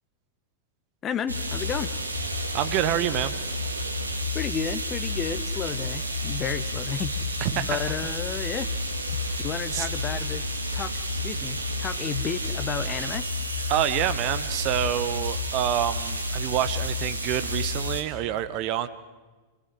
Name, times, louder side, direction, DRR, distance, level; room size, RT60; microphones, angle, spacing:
voice 1, 1.0-1.9 4.3-7.1 7.5-8.7 9.4-10.4 10.7-10.9 11.2-13.3, left 8 dB, 25° left, 13 dB, 1.3 m, -32 dB
sound 1, 1.3-18.0, left 1 dB, 80° right, 2.1 m, -30 dB
voice 2, 2.5-3.3 7.4-7.8 9.7-9.9 13.7-18.9, right 12 dB, 40° right, 13 dB, 1.1 m, -27 dB
28.0 x 17.0 x 7.8 m, 1.3 s
figure-of-eight pair, 90°, 0 cm